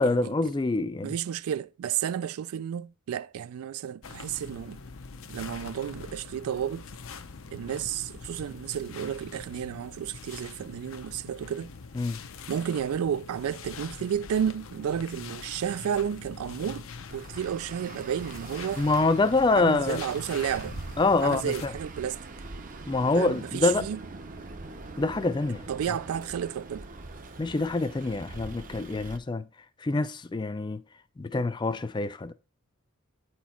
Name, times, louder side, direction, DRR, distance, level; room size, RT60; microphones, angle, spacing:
voice 1, 0.0-1.1 12.0-12.2 18.8-20.0 21.0-21.7 22.9-23.9 25.0-25.7 27.4-29.4 29.8-30.8 31.2-32.3, left 3 dB, 20° left, 0.3 m, -26 dB
voice 2, 1.0-4.8 5.3-6.9 7.5-11.7 12.5-18.9 19.5-20.8 21.2-22.2 23.2-24.0 25.7-26.9, right 9 dB, 75° right, 0.3 m, -32 dB
sound 1, 4.0-21.7, left 5 dB, 60° left, 0.7 m, -44 dB
Traffic noise roadway noise, 17.1-29.2, right 3 dB, 35° right, 0.7 m, -43 dB
9.2 x 4.4 x 4.3 m
head